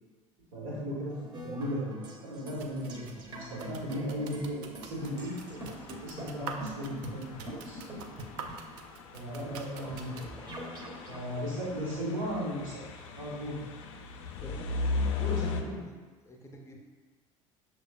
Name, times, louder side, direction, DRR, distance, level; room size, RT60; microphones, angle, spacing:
voice 1, 0.5-1.1 1.4-5.7 6.0-7.8 9.1-10.4 11.1-12.8 13.2-13.6 15.2-15.8, equal, 70° right, -4 dB, 1.1 m, -36 dB
sound 1, 1.1-11.2, right 1 dB, 25° right, 0.7 m, -44 dB
sound 2, 2.5-10.3, right 5 dB, 50° right, 0.4 m, -47 dB
sound 3, 5.0-15.6, left 4 dB, 60° left, 0.4 m, -38 dB
voice 2, 14.4-16.8, left 1 dB, 15° left, 1 dB, 0.6 m, -50 dB
6.4 x 2.3 x 2.3 m, 1.4 s
figure-of-eight pair, 65°, 17 cm